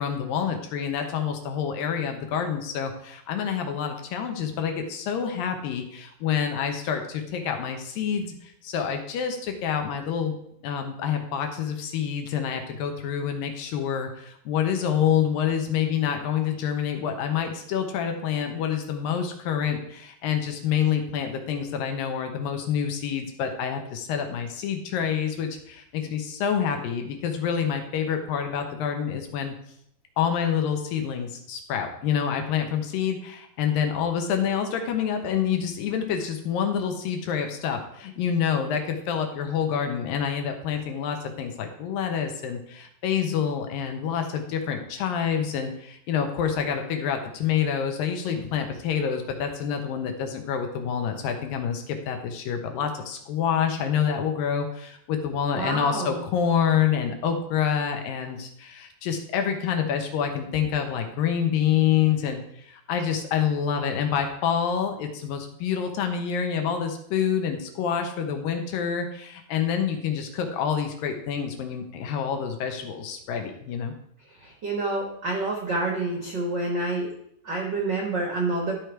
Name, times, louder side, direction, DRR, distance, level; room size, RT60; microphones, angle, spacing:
voice 1, 0.0-10.4 10.6-29.5 30.2-73.9, left 8 dB, 75° left, 5 dB, 2.6 m, -27 dB
voice 2, 55.5-56.2 74.4-77.1 77.4-78.7, right 2 dB, 65° right, -1 dB, 1.0 m, -28 dB
12.5 x 5.0 x 4.5 m, 0.71 s
omnidirectional pair, 4.4 m